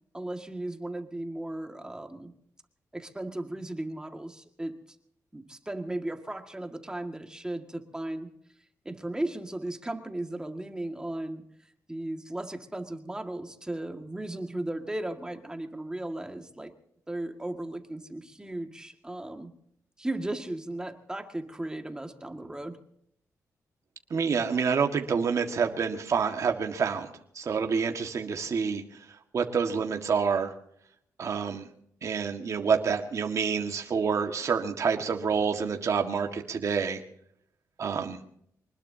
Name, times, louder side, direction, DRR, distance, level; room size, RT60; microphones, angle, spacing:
voice 1, 0.1-2.3 2.9-4.8 5.3-8.3 8.9-11.5 11.9-16.7 17.1-19.5 20.0-22.8, right 1 dB, 10° right, 5 dB, 1.9 m, -36 dB
voice 2, 24.1-27.1 27.4-28.8 29.3-30.5 31.2-31.7 32.0-37.0 37.8-38.2, right 6 dB, 55° right, 4 dB, 1.7 m, -27 dB
25.0 x 20.0 x 2.8 m, 0.69 s
cardioid pair, 95°, 6 cm